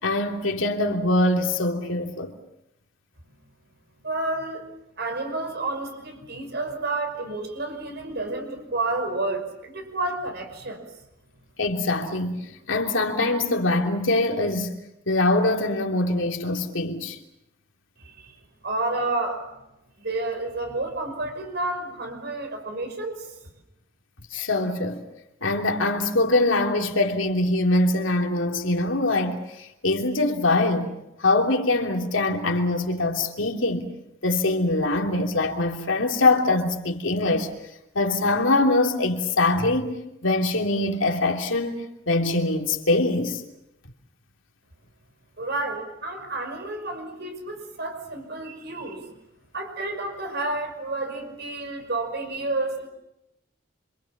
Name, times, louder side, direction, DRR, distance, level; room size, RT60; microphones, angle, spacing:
voice 1, 0.0-2.3 11.6-12.4 12.7-14.7 15.1-17.2 24.3-25.0 25.4-30.9 31.2-33.9 34.2-37.5 37.9-43.4, left 2 dB, 75° left, 3.1 m, -23 dB
voice 2, 4.0-4.6 5.0-10.8 18.0-18.4 18.6-19.5 20.0-23.3 45.4-49.2 49.5-52.9, right 2 dB, 60° right, 5.7 m, -30 dB
27.0 x 27.0 x 7.4 m
head